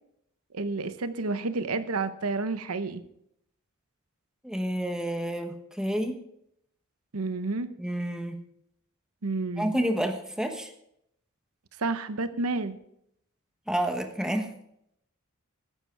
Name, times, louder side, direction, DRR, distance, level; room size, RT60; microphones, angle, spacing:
voice 1, 0.5-3.0 7.1-7.7 9.2-9.7 11.8-12.8, right 3 dB, 85° right, 11 dB, 0.9 m, -30 dB
voice 2, 4.4-6.2 7.8-8.4 9.6-10.7 13.7-14.5, right 1 dB, 5° right, 5 dB, 1.2 m, -29 dB
14.5 x 11.0 x 3.4 m, 0.74 s
head